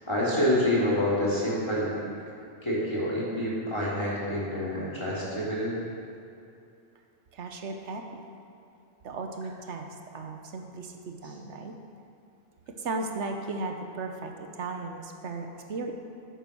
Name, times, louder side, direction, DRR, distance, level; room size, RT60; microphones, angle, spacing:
voice 1, 0.1-1.9 2.6-5.8, left 1 dB, 25° left, -7 dB, 2.9 m, -27 dB
voice 2, 7.3-8.2 9.0-11.7 12.8-15.9, right 3 dB, 85° right, 4 dB, 1.2 m, -36 dB
9.2 x 8.2 x 6.2 m, 2.6 s
omnidirectional pair, 1.2 m